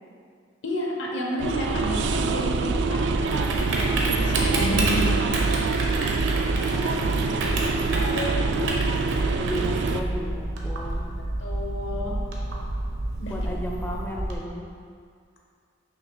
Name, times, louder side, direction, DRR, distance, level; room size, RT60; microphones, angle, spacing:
voice 1, 0.6-5.1 7.2-7.6 7.9-9.4 11.4-12.2 13.2-13.4, left 1 dB, 80° left, -1 dB, 1.0 m, -32 dB
sound 1, 1.4-10.0, right 4 dB, 65° right, 0.3 m, -26 dB
Typing, 1.7-14.3, right 1 dB, 80° right, 1.0 m, -29 dB
voice 2, 6.6-8.1 9.4-11.1 13.3-14.7, equal, 10° left, -1 dB, 0.4 m, -35 dB
6.3 x 3.2 x 5.4 m, 2.2 s
head